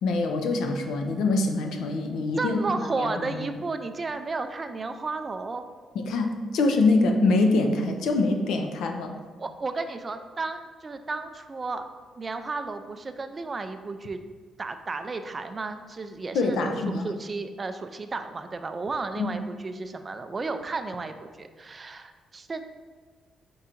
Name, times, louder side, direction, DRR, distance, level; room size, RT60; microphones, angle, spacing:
voice 1, 0.0-3.4 6.1-9.2 16.3-17.1 19.2-19.3, left 2 dB, 80° left, 5 dB, 0.5 m, -24 dB
voice 2, 2.4-5.6 9.4-11.8 12.2-14.2 14.6-22.6, right 3 dB, 30° right, 8 dB, 0.3 m, -33 dB
4.5 x 2.5 x 4.3 m, 1.5 s
cardioid pair, 90°, 0 cm